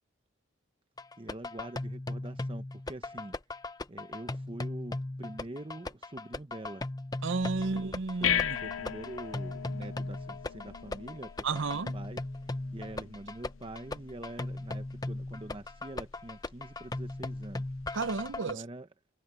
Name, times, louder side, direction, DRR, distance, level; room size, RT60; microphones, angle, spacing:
sound 1, 1.0-18.5, left 2 dB, 20° left, 0.7 m, -38 dB
voice 1, 1.2-3.3 3.9-6.9 7.5-7.8 8.2-12.2 12.7-17.6 18.4-18.9, right 1 dB, 25° right, 0.8 m, -45 dB
voice 2, 7.2-8.6 11.4-11.9 17.9-18.6, right 4 dB, 65° right, 0.7 m, -32 dB
sound 2, 7.4-18.4, left 10 dB, 80° left, 0.6 m, -39 dB
head